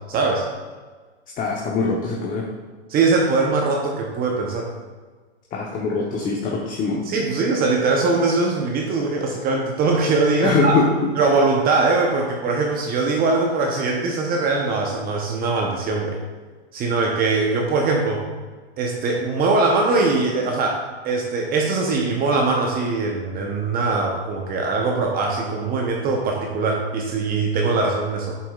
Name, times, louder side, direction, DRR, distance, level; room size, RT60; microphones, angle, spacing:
voice 1, 0.1-0.5 2.9-4.7 7.1-10.7 11.2-16.2 16.7-18.2 18.8-28.4, right 3 dB, 25° right, 1 dB, 0.9 m, -21 dB
voice 2, 1.4-2.5 5.5-7.0 10.4-10.9, left 4 dB, 25° left, -2 dB, 1.0 m, -22 dB
8.3 x 7.2 x 2.4 m, 1.4 s
hypercardioid pair, 120°, 33 cm